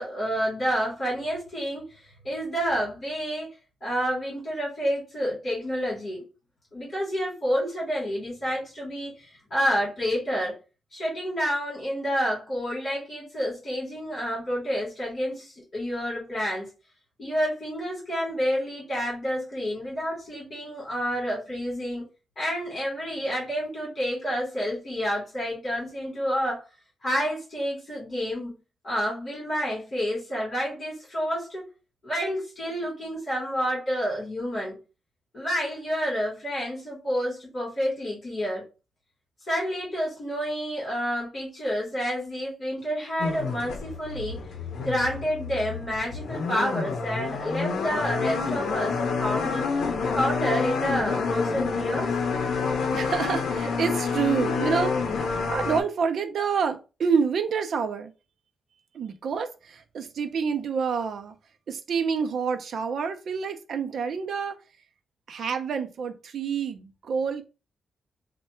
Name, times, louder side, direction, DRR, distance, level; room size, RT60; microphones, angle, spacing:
voice 1, 0.0-3.5 3.8-6.2 6.7-10.6 10.9-16.7 17.2-22.0 22.4-26.6 27.0-28.5 28.8-31.7 32.0-34.8 35.3-38.6 39.5-44.4 44.8-49.7 50.1-52.2, equal, 30° left, 2.1 m, -29 dB
sound 1, 43.2-55.8, left 5 dB, 70° left, 0.7 m, -28 dB
voice 2, 52.9-58.1 58.9-61.3 61.7-64.6 65.3-67.4, right 6 dB, 55° right, 0.5 m, -28 dB
3.3 x 2.2 x 4.3 m
wide cardioid pair, 175°, 0 cm